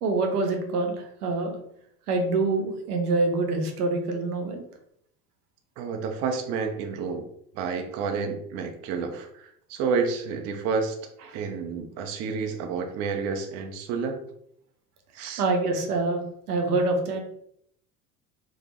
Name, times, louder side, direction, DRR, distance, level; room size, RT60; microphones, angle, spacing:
voice 1, 0.0-1.6 2.1-4.6 11.3-11.4 15.4-17.2, right 3 dB, 75° right, 3 dB, 0.7 m, -26 dB
voice 2, 5.8-7.2 7.6-11.0 11.3-14.2 15.1-15.4, right 5 dB, 35° right, 5 dB, 0.4 m, -30 dB
3.3 x 2.1 x 3.1 m, 0.71 s
figure-of-eight pair, 65°, 47 cm